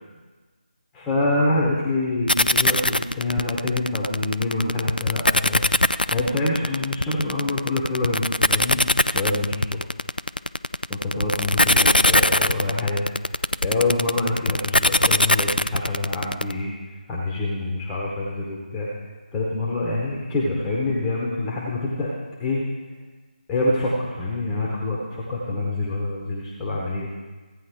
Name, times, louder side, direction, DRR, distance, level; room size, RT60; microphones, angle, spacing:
voice 1, 0.9-5.6 6.0-8.8 9.1-9.8 10.9-13.1 13.6-16.7 17.1-18.9 19.3-22.1 22.4-22.6 23.5-27.1, left 2 dB, 5° left, -4 dB, 1.0 m, -26 dB
sound 1, 2.3-16.5, left 1 dB, 90° left, 0.4 m, -20 dB
15.5 x 9.2 x 3.6 m, 1.3 s
figure-of-eight pair, 155°, 5 cm